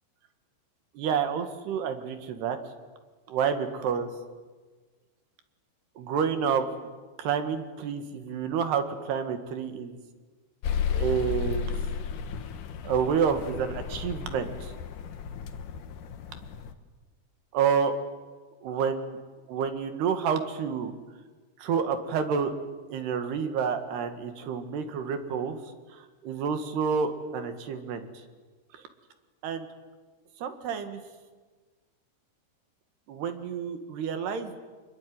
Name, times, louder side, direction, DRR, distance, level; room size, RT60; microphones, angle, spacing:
voice 1, 1.0-2.6 3.3-4.1 6.0-6.6 7.2-10.0 10.9-11.7 12.8-14.7 17.5-17.9 18.6-19.2 19.5-20.9 21.6-22.5 22.9-25.6 26.2-28.1 29.4-29.7 30.4-31.0 33.1-34.6, right 7 dB, 60° right, 8 dB, 3.7 m, -29 dB
sound 1, 10.6-16.7, left 6 dB, 70° left, 1.9 m, -33 dB
27.5 x 22.0 x 9.7 m, 1.4 s
omnidirectional pair, 5.6 m